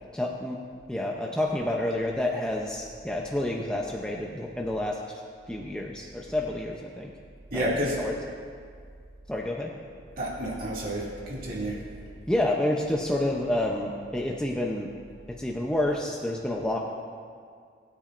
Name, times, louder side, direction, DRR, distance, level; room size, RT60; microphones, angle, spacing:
voice 1, 0.1-0.6 0.9-5.0 5.5-7.1 7.5-8.1 9.3-9.7 12.3-14.9 15.4-16.8, left 1 dB, 5° left, -2 dB, 0.6 m, -29 dB
voice 2, 7.5-8.0 10.2-11.8, equal, 45° right, -5 dB, 2.3 m, -30 dB
20.5 x 9.0 x 2.5 m, 2.1 s
head